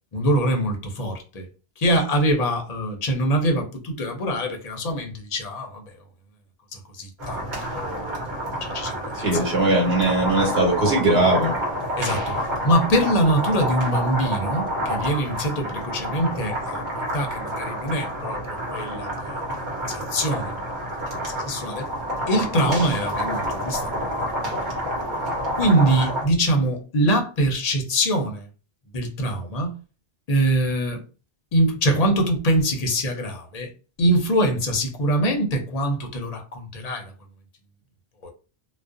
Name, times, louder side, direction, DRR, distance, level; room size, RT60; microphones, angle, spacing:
voice 1, 0.1-1.5 1.8-5.9 6.7-9.4 12.0-12.3 12.6-19.4 19.9-20.6 21.3-21.9 22.3-24.2 25.5-28.5 28.9-29.8 30.3-31.0 31.5-33.7 34.0-37.1 38.2-38.3, right 1 dB, 45° left, 0.6 m, -24 dB
sound 1, 7.2-26.3, equal, 50° right, 1.1 m, -28 dB
voice 2, 9.2-11.5, right 2 dB, 70° right, 1.2 m, -20 dB
2.4 x 2.1 x 2.4 m
omnidirectional pair, 1.1 m